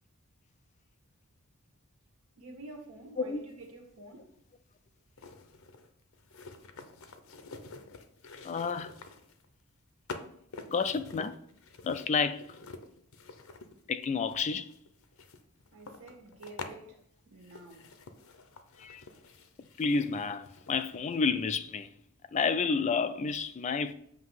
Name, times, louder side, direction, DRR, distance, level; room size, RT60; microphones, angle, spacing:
voice 1, 2.4-4.3 15.7-17.9, right 2 dB, 70° right, 1.6 m, -49 dB
sound 1, 3.7-3.8 5.2-9.5 10.1-16.8 17.4-21.2 21.5-21.6, left 3 dB, 65° left, 0.7 m, -48 dB
voice 2, 8.4-8.9 10.7-11.4 11.8-12.5 13.9-14.7 18.8-19.0 19.8-21.9 22.3-23.9, left 5 dB, 30° left, 0.3 m, -30 dB
7.6 x 2.9 x 5.6 m
head